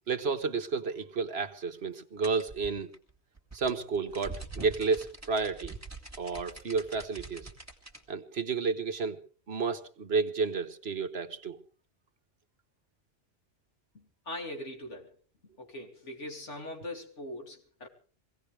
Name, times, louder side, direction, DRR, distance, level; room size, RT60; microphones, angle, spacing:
voice 1, 0.1-2.9 3.5-5.7 6.2-7.5 8.1-9.2 9.5-11.6, right 4 dB, 60° right, 7 dB, 1.5 m, -31 dB
sound 1, 2.2-8.0, right 3 dB, 15° right, 2.2 m, -44 dB
voice 2, 13.9-15.1 15.6-17.9, left 1 dB, 80° left, 2 dB, 3.2 m, -41 dB
24.0 x 17.5 x 3.4 m, 0.41 s
omnidirectional pair, 1.2 m